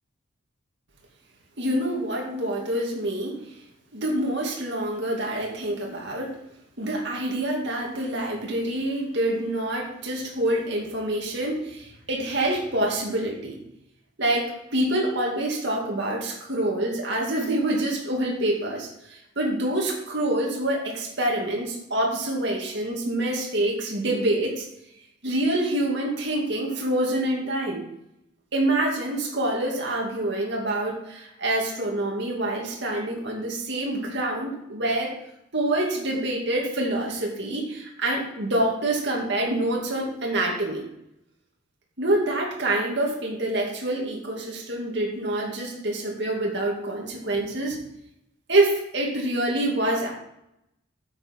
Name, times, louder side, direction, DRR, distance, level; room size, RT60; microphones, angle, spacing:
voice 1, 1.6-3.5 3.9-6.4 6.8-13.6 14.2-24.7 25.2-27.8 28.5-35.1 35.5-40.9 42.0-47.8 48.5-50.1, right 1 dB, 55° right, -1 dB, 2.3 m, -26 dB
10.0 x 7.7 x 4.5 m, 0.81 s
head